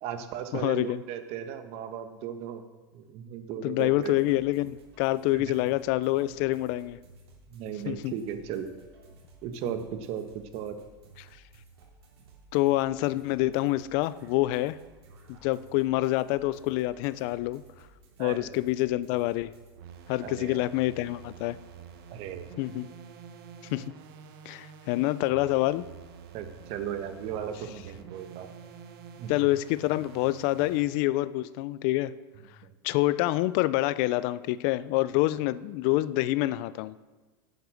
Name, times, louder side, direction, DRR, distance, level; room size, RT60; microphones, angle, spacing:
voice 1, 0.0-2.6 2.9-4.2 5.3-5.5 7.5-8.7 9.4-10.8 18.2-18.5 20.2-20.6 22.1-22.5 26.3-28.5 29.2-29.3, right 9 dB, 50° right, 8 dB, 1.4 m, -36 dB
voice 2, 0.5-1.0 3.6-7.0 7.9-8.1 12.5-14.8 15.3-17.6 18.2-19.5 20.1-21.6 22.6-22.9 23.7-23.8 24.5-25.8 29.3-32.1 32.8-36.9, left 17 dB, 55° left, 17 dB, 0.5 m, -27 dB
sound 1, 3.8-19.8, right 3 dB, 85° right, 3.4 m, -55 dB
sound 2, 19.8-30.9, right 6 dB, 70° right, 1.4 m, -47 dB
10.5 x 8.0 x 6.3 m, 1.3 s
supercardioid pair, 120°, 13 cm